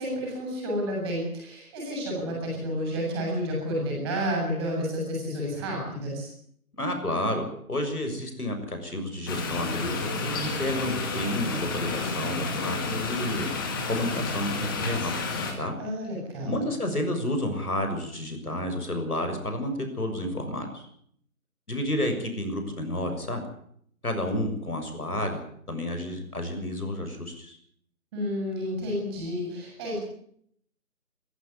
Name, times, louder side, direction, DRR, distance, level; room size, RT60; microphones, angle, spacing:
voice 1, 0.0-6.3 15.8-16.6 28.1-30.0, equal, 15° right, -1 dB, 7.8 m, -30 dB
voice 2, 6.7-15.1 15.6-15.7 16.4-20.9 21.7-23.4 24.0-25.4 25.7-27.6, left 1 dB, 80° left, 6 dB, 6.7 m, -30 dB
sound 1, 9.3-15.5, left 3 dB, 15° left, 2.0 m, -30 dB
20.5 x 15.0 x 9.6 m, 0.67 s
figure-of-eight pair, 160°, 44 cm